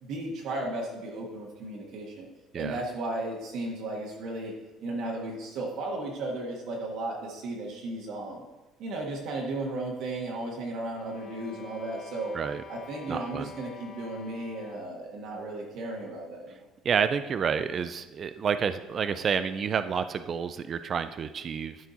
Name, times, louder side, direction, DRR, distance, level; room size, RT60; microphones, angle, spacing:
voice 1, 0.0-2.3 2.5-4.5 4.8-8.4 8.8-12.3 12.7-16.6, right 2 dB, 55° right, -2 dB, 1.6 m, -35 dB
sound 1, 10.9-15.0, left 6 dB, 50° left, 3.1 m, -47 dB
voice 2, 13.1-13.5 16.8-21.8, right 7 dB, 30° right, 12 dB, 0.3 m, -29 dB
12.5 x 4.7 x 4.1 m, 1.1 s
cardioid pair, 170°, 0 cm